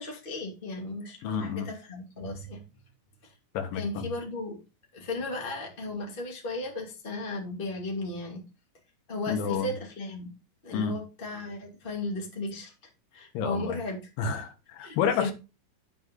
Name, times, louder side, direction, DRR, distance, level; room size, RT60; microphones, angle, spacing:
voice 1, 0.0-2.6 3.7-4.6 4.9-8.4 9.1-10.3 10.6-12.7 13.1-14.0 14.8-15.3, left 2 dB, 15° left, 2.1 m, -35 dB
voice 2, 1.2-1.7 3.6-4.1 9.3-9.7 10.7-10.9 13.4-13.8 14.2-15.3, left 7 dB, 90° left, 3.8 m, -29 dB
9.4 x 7.8 x 3.8 m
omnidirectional pair, 5.2 m